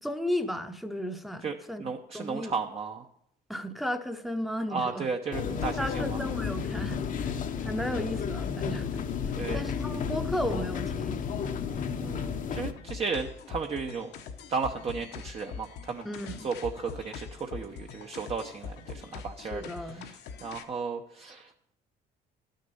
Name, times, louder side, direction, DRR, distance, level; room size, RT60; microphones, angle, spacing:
voice 1, 0.0-1.8 2.1-2.5 3.5-5.1 5.8-7.3 7.6-11.2 16.0-16.5 19.5-20.1, equal, ahead, 0.8 m, -34 dB
voice 2, 1.4-3.1 4.7-6.2 7.9-8.0 9.3-9.6 11.9-14.1 14.5-16.1 16.4-21.5, right 5 dB, 35° right, 0.8 m, -34 dB
sound 1, 5.3-12.7, left 6 dB, 50° left, 0.8 m, -32 dB
sound 2, 12.6-20.6, left 6 dB, 75° left, 1.0 m, -43 dB
12.0 x 6.6 x 5.5 m
cardioid pair, 110°, 17 cm